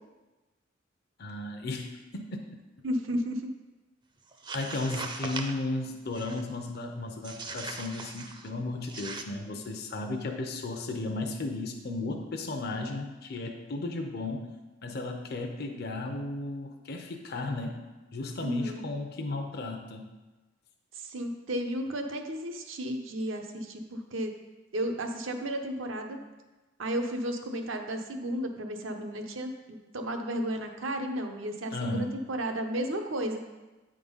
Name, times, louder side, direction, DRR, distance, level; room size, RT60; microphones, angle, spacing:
voice 1, 1.2-2.4 4.5-14.5 14.8-17.8 18.1-20.1 31.7-32.1, left 2 dB, 55° left, 3 dB, 0.6 m, -35 dB
voice 2, 2.8-3.4 18.4-18.9 21.0-24.3 24.7-26.2 26.8-33.4, right 1 dB, 80° right, 4 dB, 0.8 m, -33 dB
sound 1, 4.3-5.6 6.1-6.5 7.2-8.5 8.8-9.2, right 3 dB, 25° right, 0.5 m, -39 dB
8.6 x 3.8 x 5.5 m, 1.1 s
head